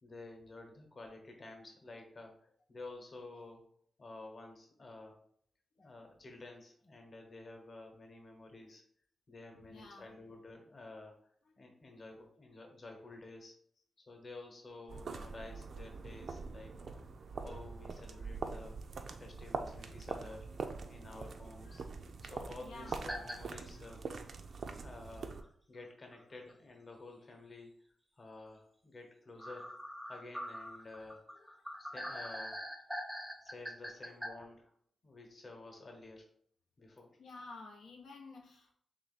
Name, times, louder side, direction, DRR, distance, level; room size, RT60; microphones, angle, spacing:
voice 1, 0.0-2.4 2.7-3.7 4.0-5.2 5.8-8.8 9.3-11.2 11.6-13.6 14.1-17.0 17.3-18.8 19.2-20.5 20.9-21.8 22.3-24.1 24.8-27.7 28.2-29.7 30.1-31.4 31.8-32.6 33.4-34.7 35.0-36.3 36.8-37.2, left 2 dB, 40° left, 2 dB, 1.0 m, -51 dB
voice 2, 9.5-10.2 11.4-11.5 18.0-18.3 20.1-20.3 21.6-21.9 22.6-23.1 23.7-23.9 26.2-26.4 29.3-29.7 31.4-32.3 34.0-34.3 37.2-38.7, left 3 dB, 85° left, 0 dB, 0.6 m, -54 dB
sound 1, 14.9-25.4, right 4 dB, 60° right, 0.4 m, -44 dB
sound 2, 23.1-23.4 23.9-24.0 25.4-25.5 26.1-26.2 26.5-26.6 29.4-34.3, equal, 5° right, 0.6 m, -43 dB
3.5 x 3.0 x 4.1 m, 0.64 s
wide cardioid pair, 105°, 0 cm